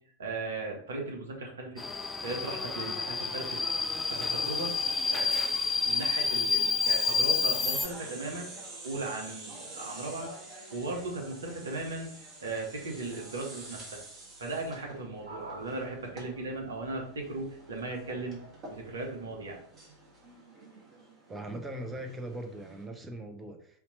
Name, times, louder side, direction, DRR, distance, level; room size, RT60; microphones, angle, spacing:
voice 1, 0.2-1.8 2.2-3.6 4.1-4.8 5.1-5.4 5.8-8.5 8.8-10.3 10.7-12.1 12.4-14.0 14.4-19.6, right 2 dB, 65° right, 0 dB, 1.1 m, -37 dB
Subway metro underground, 1.8-7.9, left 4 dB, 10° left, 0.3 m, -29 dB
sound 1, 6.8-22.9, right 2 dB, 30° right, 1.7 m, -48 dB
voice 2, 21.3-23.8, right 1 dB, 15° right, 4 dB, 0.7 m, -40 dB
4.2 x 2.8 x 4.3 m, 0.63 s
figure-of-eight pair, 90°, 0 cm